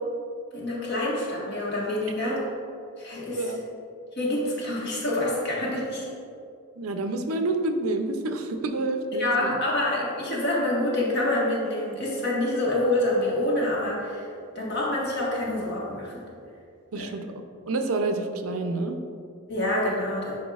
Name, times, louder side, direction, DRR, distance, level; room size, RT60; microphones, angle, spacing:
voice 1, 0.5-2.5 3.0-3.4 4.2-6.1 9.2-14.3 14.5-16.2 16.9-17.1 19.5-20.4, left 1 dB, 50° left, -4 dB, 1.5 m, -27 dB
voice 2, 3.3-3.6 6.8-9.6 16.9-17.3 17.7-19.0, right 2 dB, 90° right, 6 dB, 0.6 m, -28 dB
10.0 x 4.8 x 2.4 m, 2.4 s
head